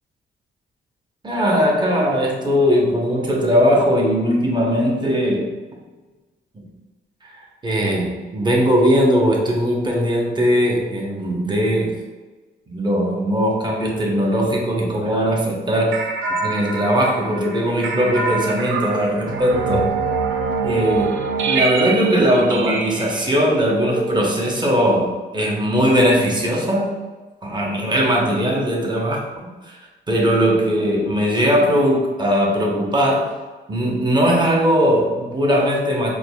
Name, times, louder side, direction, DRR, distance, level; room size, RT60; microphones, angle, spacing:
voice 1, 1.2-5.5 6.5-6.6 7.6-11.9 12.7-16.0 16.4-19.9 20.6-26.9 27.4-29.2 30.1-33.3 33.7-36.1, equal, 20° right, -2 dB, 0.7 m, -19 dB
sound 1, 15.9-24.8, right 4 dB, 70° right, 0.4 m, -25 dB
4.6 x 2.1 x 2.2 m, 1.3 s
cardioid pair, 90°, 21 cm